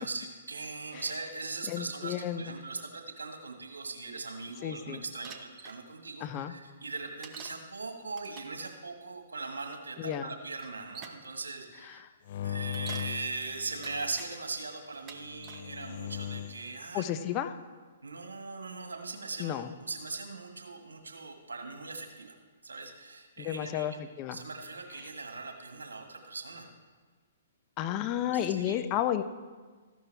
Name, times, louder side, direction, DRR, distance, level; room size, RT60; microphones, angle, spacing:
voice 1, 0.0-12.1 12.4-17.1 18.0-22.4 22.6-24.0 24.3-26.7 28.5-28.8, right 3 dB, 80° right, 4 dB, 1.7 m, -40 dB
voice 2, 1.7-2.5 4.6-5.0 6.2-6.5 10.0-10.2 11.9-12.1 16.9-17.5 19.4-19.7 23.4-24.4 27.8-29.2, left 11 dB, 30° left, 9 dB, 0.7 m, -32 dB
Bicycle, 5.2-5.8 7.2-7.6 8.1-8.6 9.7-9.8 10.6-11.3 12.6-13.1 13.6-14.3 14.9-15.7 16.3-16.7, right 6 dB, 25° right, 1.0 m, -47 dB
sound 1, 12.3-14.2 15.2-16.7, left 11 dB, 50° left, 0.3 m, -39 dB
14.5 x 11.0 x 3.5 m, 1.4 s
figure-of-eight pair, 125°, 0 cm